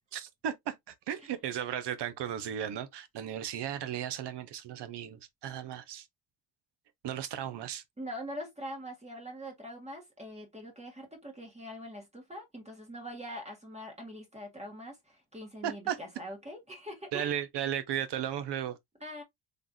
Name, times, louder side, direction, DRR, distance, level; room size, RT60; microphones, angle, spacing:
voice 1, 0.1-6.1 7.0-7.8 15.6-16.0 17.1-18.8, right 10 dB, 65° right, 1.0 m, -35 dB
voice 2, 8.0-17.4 19.0-19.2, equal, 15° right, 1.8 m, -43 dB
3.9 x 3.4 x 2.7 m
cardioid pair, 120°, 45 cm